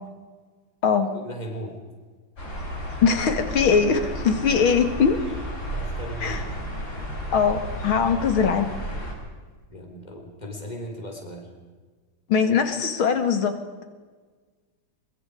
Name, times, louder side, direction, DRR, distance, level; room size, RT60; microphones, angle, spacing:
voice 1, 1.1-1.8 5.7-6.4 9.7-11.5, equal, 20° left, 2 dB, 4.0 m, -37 dB
sound 1, 2.4-9.1, equal, 50° left, 5.6 m, -33 dB
voice 2, 3.0-5.2 6.2-6.4 7.3-8.7 12.3-13.6, left 6 dB, 85° left, 8 dB, 2.8 m, -21 dB
23.5 x 23.0 x 4.9 m, 1.4 s
omnidirectional pair, 2.2 m